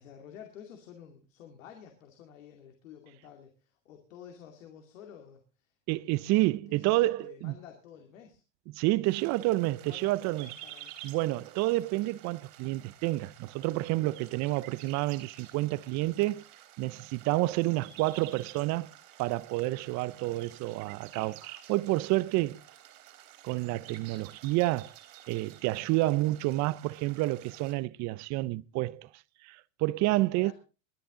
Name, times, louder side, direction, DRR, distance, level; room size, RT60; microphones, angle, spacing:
voice 1, 0.0-6.4 6.7-8.4 9.3-10.9 30.4-30.5, left 8 dB, 85° left, 2.5 m, -51 dB
voice 2, 5.9-7.5 8.8-10.5 11.0-16.4 16.8-18.9 19.2-22.6 23.4-24.9 25.3-29.1 29.4-30.5, right 19 dB, 45° right, 0.6 m, -29 dB
sound 1, 9.0-27.7, right 12 dB, 60° right, 3.5 m, -51 dB
22.0 x 10.0 x 3.8 m
supercardioid pair, 115°, 38 cm